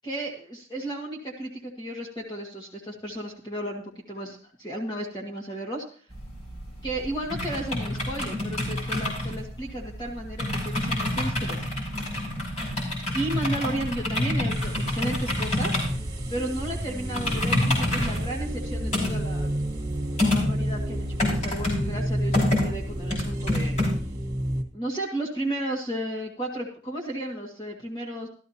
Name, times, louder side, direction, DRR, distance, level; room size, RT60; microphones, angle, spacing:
voice 1, 0.0-5.8 6.8-11.6 12.7-12.8 13.1-15.8 16.3-19.5 20.2-23.8 24.7-28.3, right 1 dB, 25° left, -2 dB, 1.9 m, -33 dB
sound 1, 6.1-23.9, left 1 dB, 40° left, 5.4 m, -28 dB
sound 2, 14.5-24.6, equal, 25° right, 1.8 m, -31 dB
14.5 x 13.0 x 2.8 m, 0.42 s
head